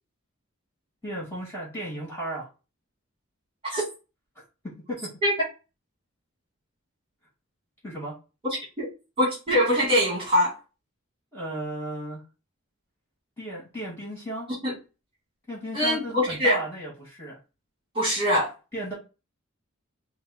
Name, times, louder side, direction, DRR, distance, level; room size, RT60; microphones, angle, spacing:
voice 1, 1.0-2.5 4.3-5.1 7.8-8.1 11.3-12.2 13.4-14.5 15.5-17.4 18.7-18.9, right 1 dB, 10° left, 2.8 m, -35 dB
voice 2, 8.4-8.9 9.2-10.5 14.6-14.7 15.7-16.6 18.0-18.5, equal, 25° right, 1.9 m, -23 dB
5.2 x 2.2 x 4.2 m
head